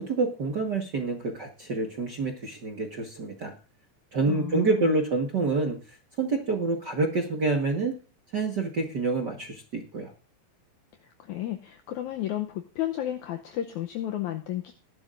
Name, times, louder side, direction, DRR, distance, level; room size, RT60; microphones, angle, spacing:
voice 1, 0.0-3.5 4.1-7.9 8.3-10.1, right 3 dB, 50° right, 2 dB, 1.2 m, -27 dB
voice 2, 4.3-4.9 11.0-14.7, left 12 dB, 75° left, 5 dB, 1.9 m, -33 dB
19.5 x 11.5 x 2.6 m, 0.36 s
omnidirectional pair, 4.0 m